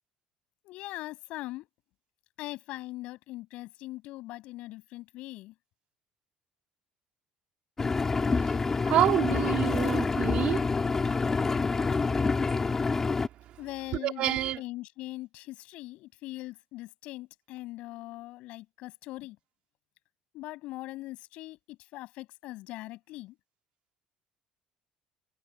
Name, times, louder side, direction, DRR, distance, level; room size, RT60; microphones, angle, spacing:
voice 1, 0.6-1.7 2.4-5.5 13.6-19.4 20.3-23.4, left 18 dB, 70° left, 7.7 m, -41 dB
Engine, 7.8-13.3, left 4 dB, 20° left, 5.0 m, -27 dB
voice 2, 8.4-10.6 14.0-14.6, right 12 dB, 55° right, 3.1 m, -28 dB
cardioid pair, 140°, 2 cm